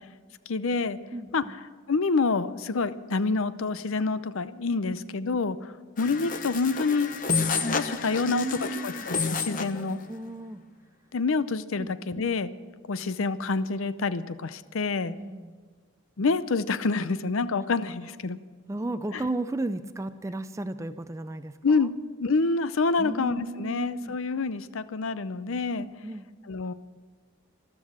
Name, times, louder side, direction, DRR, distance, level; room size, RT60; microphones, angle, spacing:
voice 1, 0.5-1.0 1.3-1.4 1.9-7.1 7.7-10.0 11.1-12.5 12.9-15.2 16.2-18.4 21.6-21.9 22.2-25.9 26.5-26.7, left 4 dB, 70° left, 14 dB, 0.6 m, -27 dB
voice 2, 1.1-1.6 4.9-5.0 8.3-9.1 9.7-10.6 11.8-11.9 15.1-15.6 18.7-21.9 23.0-24.2 25.8-26.3, right 2 dB, 15° right, 11 dB, 0.4 m, -34 dB
sound 1, 6.0-9.8, left 4 dB, 40° left, 0.9 m, -30 dB
14.0 x 13.0 x 7.3 m, 1.5 s
head